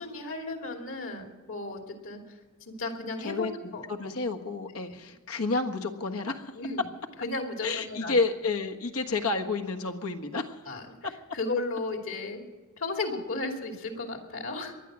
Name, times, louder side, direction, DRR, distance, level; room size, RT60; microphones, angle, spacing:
voice 1, 0.0-3.8 6.5-6.9 7.2-8.2 10.7-12.4 12.8-14.8, left 2 dB, 65° left, 3 dB, 2.8 m, -35 dB
voice 2, 3.2-3.5 3.9-6.5 7.6-10.6, left 3 dB, 80° left, 4 dB, 1.5 m, -30 dB
19.5 x 12.0 x 6.2 m, 1.3 s
head